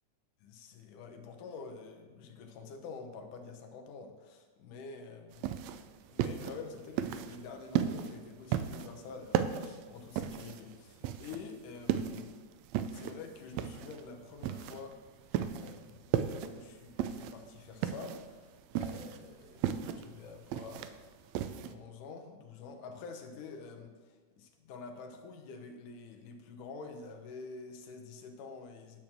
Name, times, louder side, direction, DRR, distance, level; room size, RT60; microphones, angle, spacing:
voice 1, 0.4-5.6 6.1-12.4 12.9-29.0, left 4 dB, 85° left, 4 dB, 2.5 m, -48 dB
sound 1, 5.3-21.7, right 10 dB, 85° right, 1.5 m, -35 dB
10.0 x 4.5 x 7.4 m, 1.4 s
omnidirectional pair, 3.6 m